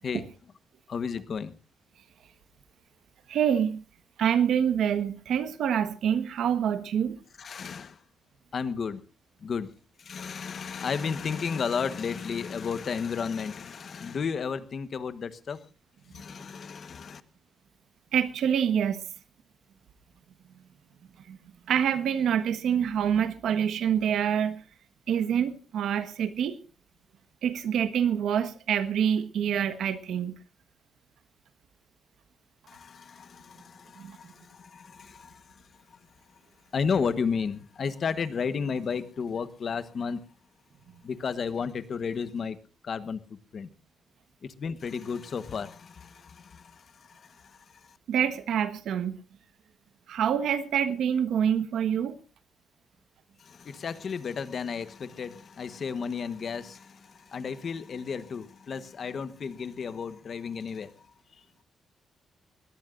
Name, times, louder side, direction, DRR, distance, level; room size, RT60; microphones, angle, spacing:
voice 1, 0.9-1.5 7.4-8.0 8.5-9.0 9.4-9.7 10.0-15.6 16.1-17.2 32.7-36.0 36.7-40.2 41.0-42.6 42.8-43.7 44.4-48.0 53.4-61.1 61.3-61.4, left 6 dB, 45° left, 13 dB, 1.2 m, -33 dB
voice 2, 3.3-3.8 4.2-7.2 18.1-19.0 21.3-21.4 21.7-24.6 25.1-26.6 27.4-30.4 34.0-34.2 48.1-49.2 50.1-52.2, right 8 dB, 90° right, 11 dB, 1.3 m, -26 dB
21.5 x 17.5 x 2.5 m, 0.31 s
wide cardioid pair, 145°, 0 cm